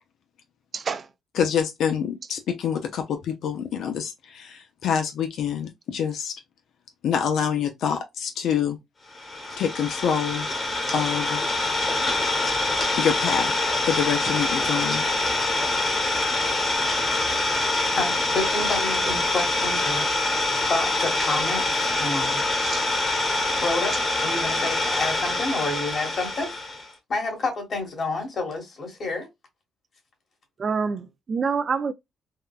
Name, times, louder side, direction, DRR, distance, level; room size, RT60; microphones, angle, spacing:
voice 1, 0.7-1.1 22.2-22.9 23.5-23.6 30.6-31.9, right 5 dB, 45° right, 0.4 m, -28 dB
voice 2, 1.4-6.3 7.0-8.8 9.6-10.5 10.9-11.4 13.0-13.5 13.8-15.0, left 7 dB, 75° left, 0.5 m, -26 dB
Idling, 9.2-26.9, left 2 dB, 30° left, 1.2 m, -25 dB
voice 3, 17.9-20.4 20.7-22.4 23.6-24.0 24.2-26.6 27.1-29.3, left 3 dB, 50° left, 1.4 m, -29 dB
3.6 x 2.2 x 2.3 m
cardioid pair, 90°, 0 cm